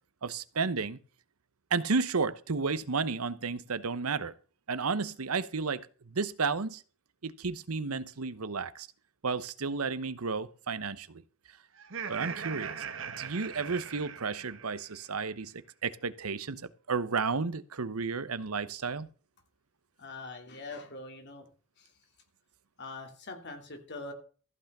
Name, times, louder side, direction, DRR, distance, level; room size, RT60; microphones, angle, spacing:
voice 1, 0.2-1.0 1.7-4.3 4.7-6.8 7.2-8.9 9.2-11.2 12.1-12.8 13.2-19.1, right 4 dB, 85° right, 0.9 m, -32 dB
Laughter, 11.8-15.0, right 7 dB, 65° right, 1.6 m, -40 dB
voice 2, 20.0-21.5 21.8-21.9 22.8-24.1, left 3 dB, 55° left, 2.9 m, -43 dB
14.5 x 5.9 x 6.8 m
head